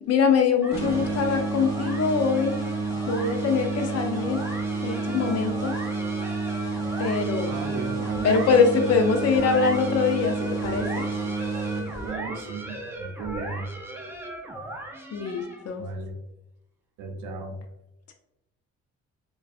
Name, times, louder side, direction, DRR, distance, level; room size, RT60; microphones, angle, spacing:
voice 1, 0.1-2.6 3.1-4.4 4.8-5.7 7.0-7.7 8.2-11.1 15.1-15.9, left 5 dB, 55° left, 5 dB, 0.5 m, -23 dB
sound 1, 0.6-15.8, right 1 dB, 10° right, 0.4 m, -38 dB
sound 2, 0.7-12.4, right 3 dB, 20° left, 1.2 m, -29 dB
voice 2, 7.5-8.3 12.0-13.7 15.8-16.2 17.0-17.6, right 4 dB, 90° right, 4 dB, 0.5 m, -35 dB
2.5 x 2.3 x 2.3 m, 0.85 s
cardioid pair, 90°, 30 cm